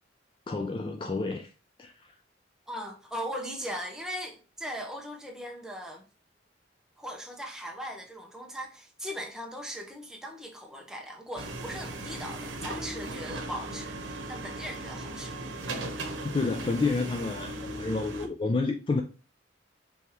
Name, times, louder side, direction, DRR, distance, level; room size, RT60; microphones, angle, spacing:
voice 1, 0.5-1.5 1.8-2.1 16.2-19.0, left 3 dB, 25° left, 0.3 m, -30 dB
voice 2, 2.7-6.1 7.0-15.4, equal, 5° right, 0.9 m, -39 dB
sound 1, 11.4-18.3, right 2 dB, 80° right, 0.9 m, -37 dB
5.1 x 3.5 x 3.0 m
head